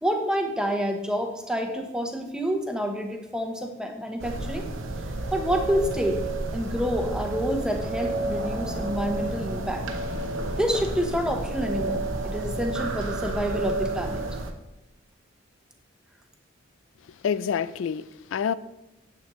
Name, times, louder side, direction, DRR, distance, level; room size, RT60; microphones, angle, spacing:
voice 1, 0.0-4.7 5.3-6.2 6.5-9.9 10.6-14.3, equal, 5° right, 0.9 m, -28 dB
sound 1, 4.2-14.5, right 2 dB, 90° right, 0.8 m, -31 dB
voice 2, 17.1-18.5, left 7 dB, 90° left, 0.3 m, -28 dB
8.9 x 8.2 x 3.1 m
head